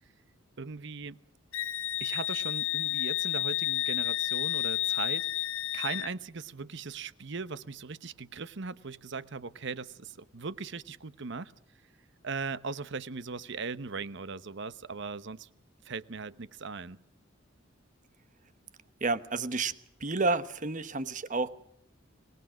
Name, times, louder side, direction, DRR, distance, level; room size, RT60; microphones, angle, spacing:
voice 1, 0.6-1.2 2.0-11.5 12.2-15.5 15.8-17.0, right 4 dB, 60° right, 0.9 m, -39 dB
Wind instrument woodwind instrument, 1.5-6.1, left 14 dB, 85° left, 0.8 m, -31 dB
voice 2, 19.0-19.7 20.0-21.5, right 3 dB, 40° right, 1.1 m, -30 dB
25.0 x 20.0 x 6.3 m
head